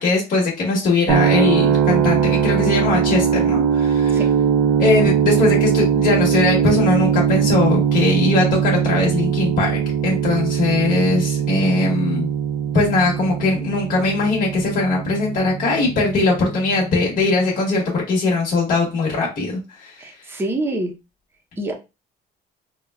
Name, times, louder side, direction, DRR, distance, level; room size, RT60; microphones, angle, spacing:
voice 1, 0.0-4.3 4.8-12.3 12.7-19.9, left 3 dB, 55° left, -3 dB, 1.2 m, -20 dB
sound 1, 1.1-17.0, right 8 dB, 80° right, 0.4 m, -20 dB
voice 2, 20.0-20.9 21.6-21.7, right 1 dB, 15° right, 2 dB, 0.6 m, -25 dB
3.4 x 2.2 x 2.2 m, 0.27 s
cardioid pair, 110°, 17 cm